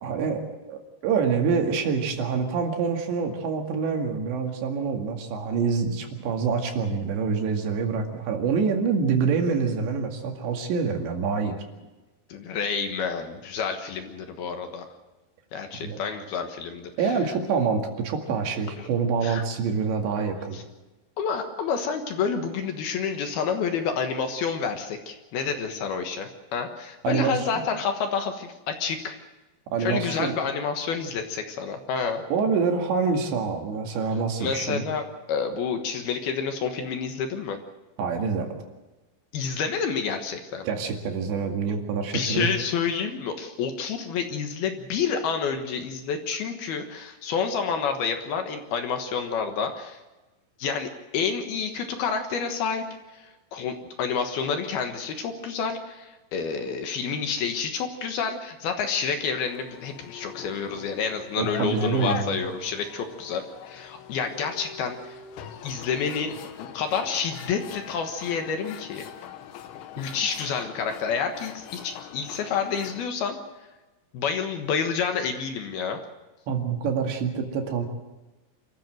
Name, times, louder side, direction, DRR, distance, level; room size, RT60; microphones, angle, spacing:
voice 1, 0.0-11.6 15.8-16.0 17.0-20.6 27.0-27.5 29.7-30.4 32.3-34.8 38.0-38.5 40.7-42.5 61.4-62.4 76.5-77.9, right 5 dB, 70° right, 3 dB, 4.3 m, -26 dB
voice 2, 12.3-14.9 15.5-16.9 18.8-18.9 19.2-19.4 20.5-20.6 21.2-29.2 29.8-32.2 34.4-37.6 39.3-40.7 42.1-50.0 50.6-52.8 53.1-53.2 53.5-65.2 65.6-69.1 70.0-73.4 74.1-76.0, left 6 dB, 65° left, 6 dB, 2.9 m, -29 dB
sound 1, 59.4-73.0, left 8 dB, 85° left, 3.7 m, -41 dB
27.0 x 14.0 x 7.8 m, 1.1 s
omnidirectional pair, 5.3 m